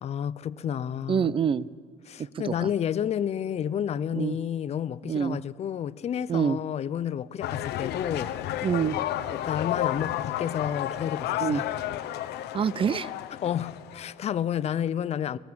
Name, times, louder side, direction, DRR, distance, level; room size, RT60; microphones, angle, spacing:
voice 1, 0.0-1.4 2.1-8.5 9.3-11.8 13.3-15.4, left 9 dB, 40° left, 0.5 m, -30 dB
voice 2, 1.1-1.7 2.4-2.7 4.2-4.3 5.1-5.4 6.3-6.6 8.6-9.0 11.4-11.6 12.5-13.1, right 7 dB, 30° right, 0.5 m, -26 dB
sound 1, 7.4-14.3, left 12 dB, 80° left, 0.8 m, -32 dB
19.0 x 18.0 x 7.8 m
cardioid pair, 110°, 17 cm